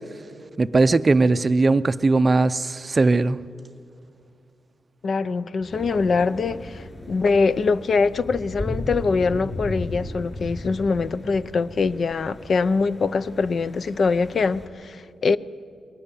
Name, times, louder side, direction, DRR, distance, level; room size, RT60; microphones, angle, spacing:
voice 1, 0.6-3.4, right 3 dB, 30° right, 0.5 m, -19 dB
voice 2, 5.0-15.4, left 4 dB, 50° left, 0.6 m, -23 dB
sound 1, 5.7-14.7, left 1 dB, 20° left, 4.2 m, -36 dB
22.5 x 18.5 x 9.8 m
wide cardioid pair, 120°, 0 cm